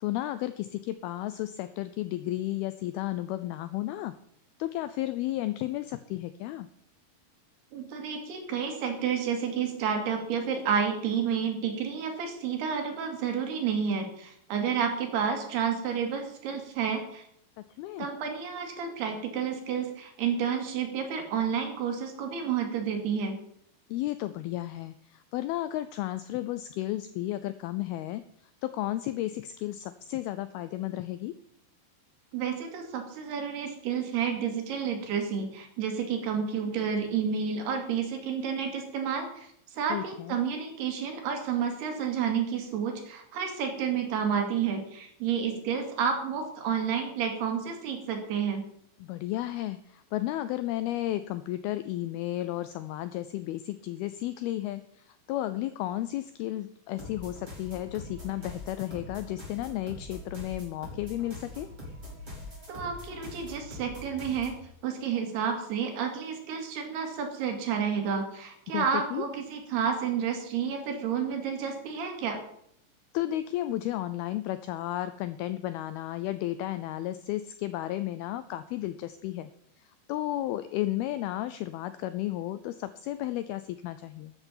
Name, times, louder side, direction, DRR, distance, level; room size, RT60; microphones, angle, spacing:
voice 1, 0.0-4.1 4.6-6.7 17.6-18.1 23.9-28.2 28.6-31.3 39.9-40.4 49.0-61.7 68.7-69.3 73.1-79.5 79.8-84.3, left 14 dB, 85° left, 13 dB, 2.2 m, -33 dB
voice 2, 7.7-17.2 18.0-23.4 32.3-48.6 62.7-64.6 64.8-72.4, right 7 dB, 70° right, 4 dB, 4.1 m, -30 dB
sound 1, 57.0-64.6, left 1 dB, 10° right, 5.1 m, -43 dB
13.5 x 8.1 x 7.3 m, 0.70 s
omnidirectional pair, 5.0 m